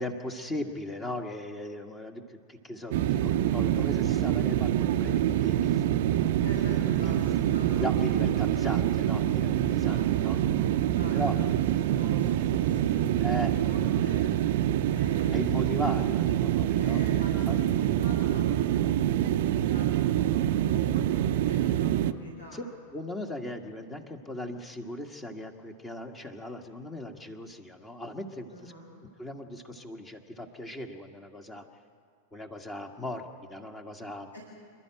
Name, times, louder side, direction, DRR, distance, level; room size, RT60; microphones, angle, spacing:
voice 1, 0.0-5.8 6.6-6.9 7.8-10.4 11.1-11.4 13.2-13.5 15.3-17.0 17.5-17.6 22.5-22.6 22.9-28.7 29.2-31.6 32.3-34.3, left 1 dB, 15° left, 5 dB, 1.5 m, -38 dB
sound 1, 2.9-22.1, right 11 dB, 55° right, 0.7 m, -26 dB
voice 2, 6.1-7.9 9.6-14.3 14.6-16.3 16.8-22.6 28.5-28.9 34.3-34.4, right 1 dB, 80° left, -2 dB, 5.2 m, -45 dB
27.0 x 12.0 x 8.9 m, 2.1 s
figure-of-eight pair, 90°, 0 cm